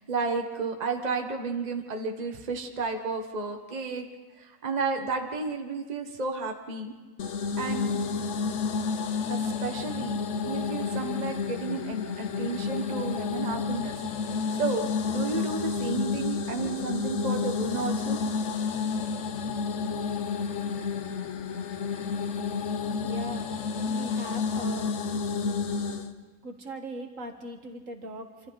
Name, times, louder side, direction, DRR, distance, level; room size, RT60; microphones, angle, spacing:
voice 1, 0.0-4.1 4.4-6.9 7.6-7.9 9.3-10.2 10.4-14.0 14.5-18.2, right 4 dB, 30° right, 4 dB, 1.4 m, -32 dB
sound 1, 7.2-26.1, left 5 dB, 60° left, 1.2 m, -30 dB
voice 2, 23.0-23.6 23.9-25.0 26.4-28.5, right 1 dB, 65° right, 4 dB, 2.0 m, -39 dB
27.0 x 26.5 x 4.1 m, 1.3 s
omnidirectional pair, 1.5 m